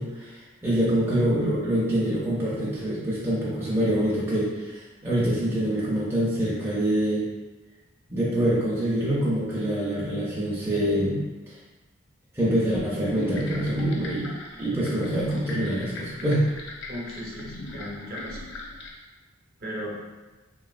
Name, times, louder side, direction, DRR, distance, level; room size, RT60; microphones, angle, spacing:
voice 1, 0.0-7.3 8.1-11.2 11.5-11.6 12.3-14.3 14.6-16.5, right 1 dB, 10° right, -8 dB, 0.5 m, -25 dB
sound 1, 13.1-18.9, left 2 dB, 55° left, 0.4 m, -39 dB
voice 2, 16.9-18.5 19.6-19.9, equal, 45° right, -4 dB, 0.7 m, -36 dB
3.0 x 2.7 x 2.4 m, 1.2 s
head